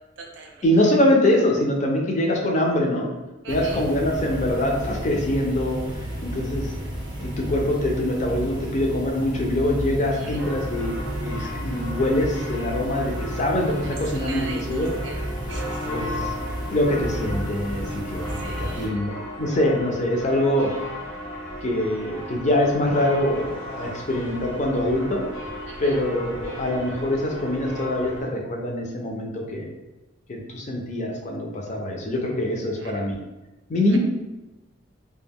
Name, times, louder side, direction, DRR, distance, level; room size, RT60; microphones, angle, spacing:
voice 1, 0.0-1.0 3.4-3.8 10.1-10.4 13.8-15.2 15.5-16.0 17.9-18.0 18.3-19.0 25.7-26.0 32.7-33.1 33.9-34.0, right 3 dB, 65° right, 1 dB, 0.5 m, -41 dB
voice 2, 0.6-3.1 3.5-6.7 7.2-14.9 15.9-16.3 16.7-19.1 19.4-20.7 21.6-25.2 25.8-29.7 30.3-33.2 33.7-34.0, left 1 dB, 40° left, 0 dB, 0.5 m, -24 dB
sound 1, 3.5-18.9, equal, 25° right, 0.6 m, -32 dB
sound 2, 10.3-28.2, equal, 85° left, 0.9 m, -36 dB
2.2 x 2.1 x 3.4 m, 1.1 s
head